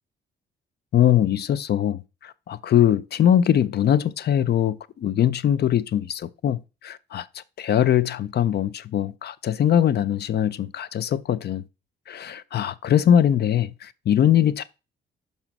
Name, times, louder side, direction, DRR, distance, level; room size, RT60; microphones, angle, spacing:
voice 1, 0.9-11.6 12.1-14.6, left 10 dB, 55° left, 0.6 m, -22 dB
5.5 x 4.9 x 5.9 m
cardioid pair, 90°, 20 cm